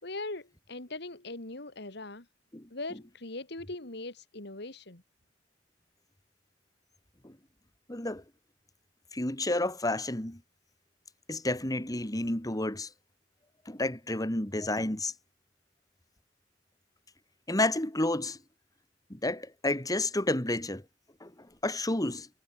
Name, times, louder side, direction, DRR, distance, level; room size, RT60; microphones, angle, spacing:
voice 1, 0.0-2.3 2.7-5.0, left 2 dB, 65° left, 2.9 m, -40 dB
voice 2, 7.9-8.2 9.1-10.4 11.3-12.9 13.7-15.1 17.5-18.4 19.1-20.8 21.2-22.3, left 2 dB, 20° left, 2.3 m, -30 dB
head